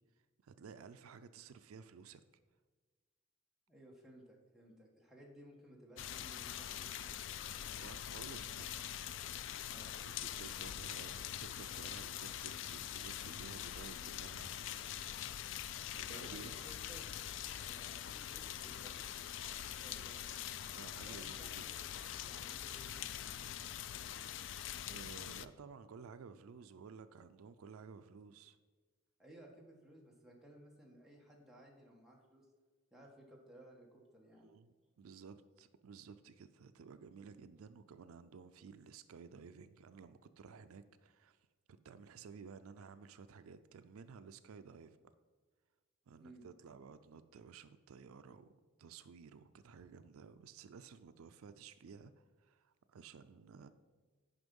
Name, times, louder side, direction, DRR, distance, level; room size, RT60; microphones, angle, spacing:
voice 1, 0.4-2.2 7.8-8.7 10.0-14.5 15.9-16.5 20.7-21.7 24.9-28.6 34.4-41.5 41.8-45.0 46.1-48.5 48.8-53.7, right 5 dB, 80° right, 12 dB, 0.4 m, -54 dB
voice 2, 3.7-7.5 9.7-10.0 16.1-17.1 17.6-19.0 19.7-20.2 21.0-23.0 29.2-32.5 32.9-34.5 46.2-46.5, right 1 dB, ahead, -3 dB, 1.3 m, -59 dB
sound 1, 6.0-25.5, left 10 dB, 60° left, 0.3 m, -44 dB
9.7 x 5.2 x 5.3 m, 1.4 s
head